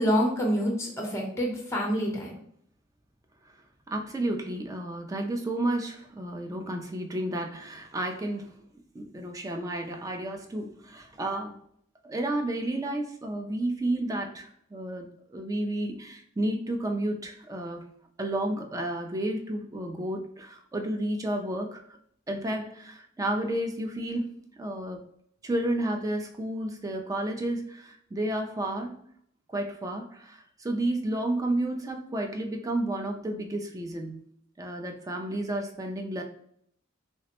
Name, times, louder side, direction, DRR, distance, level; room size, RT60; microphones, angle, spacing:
voice 1, 0.0-2.3, equal, 15° left, -1 dB, 0.6 m, -27 dB
voice 2, 3.9-8.6 8.9-11.6 12.0-17.8 18.2-21.8 22.3-24.3 24.6-25.0 25.4-28.9 29.5-34.2 34.6-36.2, right 1 dB, 15° right, 3 dB, 0.3 m, -31 dB
3.2 x 2.0 x 2.8 m, 0.68 s
head